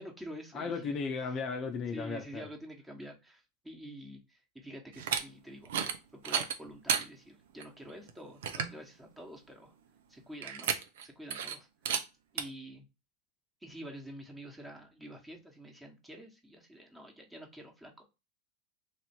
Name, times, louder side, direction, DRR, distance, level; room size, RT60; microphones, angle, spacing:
voice 1, 0.0-0.9 1.9-9.7 10.1-10.7 11.0-11.7 12.3-12.9 13.6-18.0, equal, 10° right, 1.2 m, -48 dB
voice 2, 0.5-2.5, left 5 dB, 40° left, 0.6 m, -35 dB
sound 1, 4.9-5.2 5.6-6.0 6.2-7.0 7.6-7.7 8.1-8.2 8.4-8.8 10.4-11.0 11.3-11.5 11.8-12.0 12.4-12.5, right 8 dB, 75° right, 0.6 m, -32 dB
3.2 x 2.7 x 4.3 m
hypercardioid pair, 95°, 0 cm